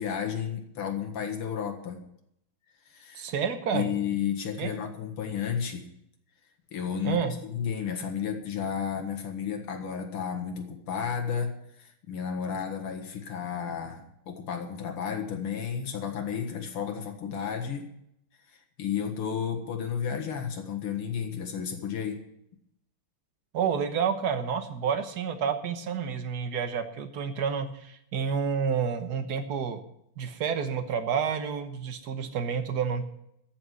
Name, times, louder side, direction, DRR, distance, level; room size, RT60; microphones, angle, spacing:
voice 1, 0.0-2.0 2.9-3.3 3.7-5.9 6.7-17.9 18.5-22.2, left 7 dB, 85° left, 3 dB, 2.6 m, -32 dB
voice 2, 3.1-4.0 4.6-4.7 7.0-7.3 23.5-29.8 30.2-33.1, right 7 dB, 50° right, 8 dB, 1.6 m, -29 dB
14.0 x 6.2 x 9.5 m, 0.75 s
omnidirectional pair, 2.4 m